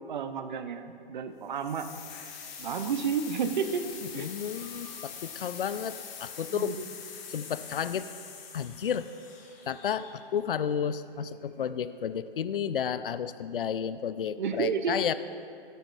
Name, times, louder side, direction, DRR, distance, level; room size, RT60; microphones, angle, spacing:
voice 1, 0.1-1.9 2.6-3.8 4.1-4.3 6.5-6.9 14.4-15.0, right 6 dB, 50° right, 10 dB, 0.7 m, -31 dB
sound 1, 1.6-10.4, left 7 dB, 25° left, 1.3 m, -44 dB
voice 2, 4.2-6.7 7.3-8.1 8.5-9.1 9.7-15.1, left 8 dB, 65° left, 14 dB, 0.5 m, -32 dB
13.5 x 12.5 x 2.3 m, 2.4 s
figure-of-eight pair, 120°, 30 cm